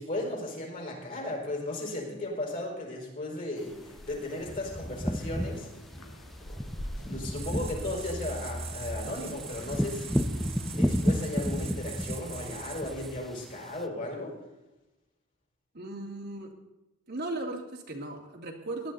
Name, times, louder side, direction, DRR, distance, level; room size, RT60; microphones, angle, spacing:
voice 1, 0.0-5.8 6.5-6.6 6.9-14.4, left 1 dB, 40° left, -1 dB, 5.0 m, -36 dB
sound 1, 3.7-11.4, equal, 80° left, 2.0 m, -47 dB
sound 2, 3.7-4.0 4.4-13.8, equal, ahead, 0.6 m, -32 dB
sound 3, 7.3-13.4, right 3 dB, 30° right, 1.2 m, -41 dB
voice 2, 15.7-16.5 17.1-18.9, right 2 dB, 50° right, 1 dB, 2.2 m, -37 dB
18.5 x 11.5 x 4.0 m, 0.99 s
head